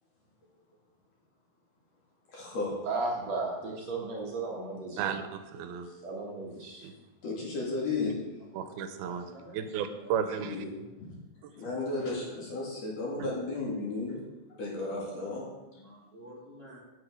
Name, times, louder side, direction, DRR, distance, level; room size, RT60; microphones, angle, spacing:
voice 1, 2.3-2.7 5.8-5.9 7.2-8.1 10.4-10.7 11.0-11.1 11.5-14.2 14.6-15.5, left 3 dB, 50° left, -3 dB, 2.8 m, -34 dB
voice 2, 2.8-5.1 6.0-6.8, right 3 dB, 60° right, -2 dB, 2.0 m, -34 dB
voice 3, 5.0-5.9 6.8-6.9 8.5-9.2 9.5-10.6 11.4-11.7 13.2-13.3, right 8 dB, 85° right, 9 dB, 2.6 m, -34 dB
voice 4, 9.0-10.3 14.9-15.3 15.7-16.8, equal, 70° left, -5 dB, 0.5 m, -51 dB
9.2 x 8.1 x 4.9 m, 1.1 s
omnidirectional pair, 4.4 m